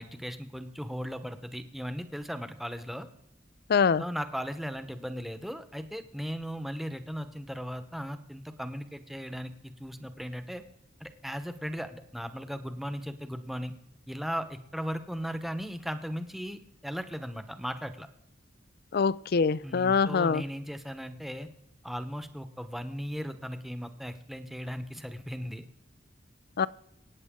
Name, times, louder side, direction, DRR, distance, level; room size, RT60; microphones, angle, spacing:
voice 1, 0.0-3.1 4.0-10.6 11.0-13.7 14.1-18.1 19.6-21.5 21.8-25.6, equal, ahead, 1.0 m, -37 dB
voice 2, 3.7-4.0 18.9-20.4 26.6-26.7, left 5 dB, 55° left, 0.5 m, -24 dB
24.0 x 9.4 x 3.8 m
head